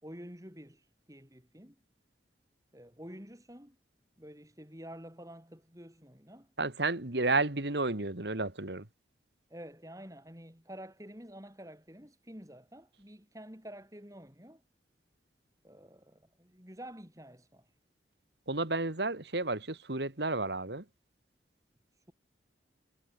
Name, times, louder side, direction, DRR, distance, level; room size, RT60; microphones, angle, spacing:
voice 1, 0.0-1.8 2.7-3.8 4.2-6.5 9.5-14.6 15.6-17.7 21.9-22.1, equal, 20° right, 5.5 m, -49 dB
voice 2, 6.6-8.9 18.5-20.9, right 3 dB, 70° right, 2.1 m, -31 dB
head